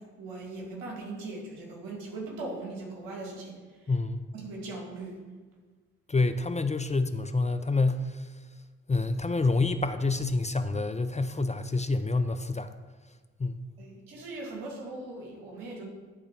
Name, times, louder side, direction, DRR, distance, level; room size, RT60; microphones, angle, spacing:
voice 1, 0.2-3.6 4.3-5.2 13.8-15.8, right 2 dB, 80° right, -2 dB, 2.3 m, -39 dB
voice 2, 3.9-4.3 6.1-8.3 8.9-12.7 13.4-13.7, left 3 dB, 20° left, 10 dB, 0.6 m, -27 dB
11.5 x 4.0 x 6.0 m, 1.4 s
hypercardioid pair, 45°, 34 cm